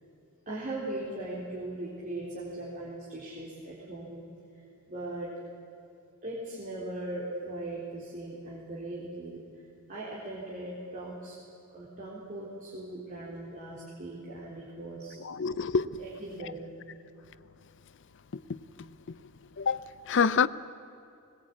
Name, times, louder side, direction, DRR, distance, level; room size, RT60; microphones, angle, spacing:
voice 1, 0.5-4.2 4.9-5.3 6.2-9.4 9.9-11.4 11.7-15.2 16.0-16.7, right 1 dB, 40° right, 3.8 m, -39 dB
voice 2, 15.2-16.0 16.4-16.5 18.3-19.2 19.6-20.5, left 6 dB, 55° left, 0.5 m, -28 dB
21.0 x 20.5 x 8.4 m
head